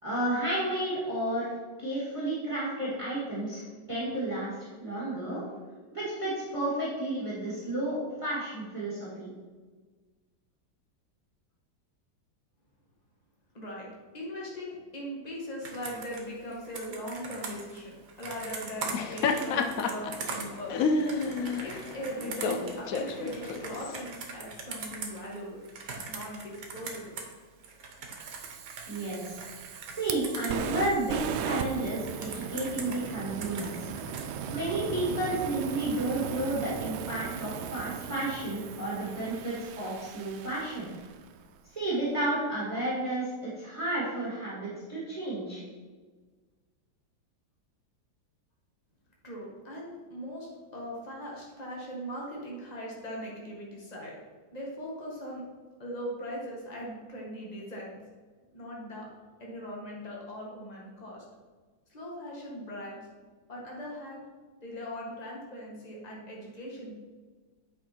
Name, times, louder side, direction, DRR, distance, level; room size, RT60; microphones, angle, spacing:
voice 1, 0.0-1.5 1.8-3.6 3.9-5.4 5.9-9.3 28.9-29.4 29.9-33.9 34.5-40.9 41.7-45.6, right 1 dB, 15° right, -8 dB, 2.0 m, -32 dB
voice 2, 13.5-13.9 14.1-20.9 21.6-25.6 26.1-27.2 49.2-54.1 54.5-55.4 55.8-58.0 58.5-59.1 59.4-61.2 61.9-63.1 63.5-64.2 64.6-66.9, equal, 20° left, -3 dB, 1.7 m, -40 dB
Computer keyboard, 15.6-27.3 27.6-31.6 32.0-34.3, right 4 dB, 60° right, 1.5 m, -42 dB
Laughter, 18.8-24.0, left 4 dB, 75° left, 0.7 m, -31 dB
Fire, 28.2-41.3, right 7 dB, 85° right, 1.4 m, -38 dB
8.3 x 5.2 x 4.4 m, 1.4 s
omnidirectional pair, 2.2 m